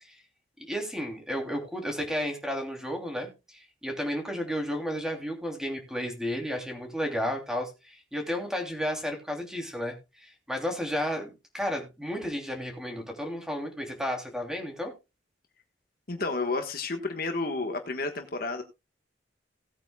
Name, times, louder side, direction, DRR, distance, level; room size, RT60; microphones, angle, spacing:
voice 1, 0.6-14.9, equal, 5° right, 2.9 m, -33 dB
voice 2, 16.1-18.6, left 3 dB, 50° left, 1.4 m, -31 dB
18.0 x 8.8 x 2.3 m
head